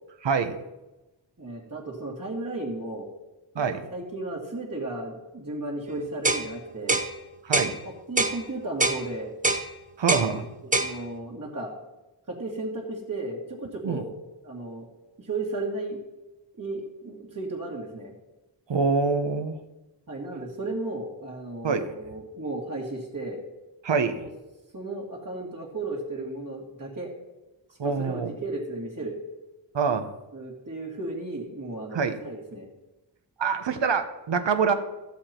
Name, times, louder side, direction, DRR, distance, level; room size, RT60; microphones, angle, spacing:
voice 1, 0.2-0.5 3.5-3.8 7.4-7.8 10.0-10.4 13.8-14.0 18.7-19.6 21.6-21.8 23.8-24.1 27.8-28.3 29.7-30.1 31.9-32.2 33.4-34.7, right 5 dB, 85° right, 8 dB, 1.1 m, -25 dB
voice 2, 1.4-3.1 3.5-7.0 7.6-9.3 10.8-11.7 12.3-14.1 14.4-14.9 15.2-16.0 16.5-18.1 20.1-23.4 24.2-24.3 24.7-27.1 27.8-29.2 30.3-32.7, right 2 dB, 45° right, -5 dB, 2.4 m, -34 dB
sound 1, 6.2-6.5 6.9-7.1 7.5-7.7 8.2-8.4 8.8-9.0 9.4-9.7 10.1-10.3 10.7-10.9, right 2 dB, 20° right, 0.9 m, -23 dB
13.0 x 7.5 x 4.4 m, 1.0 s
wide cardioid pair, 70°, 43 cm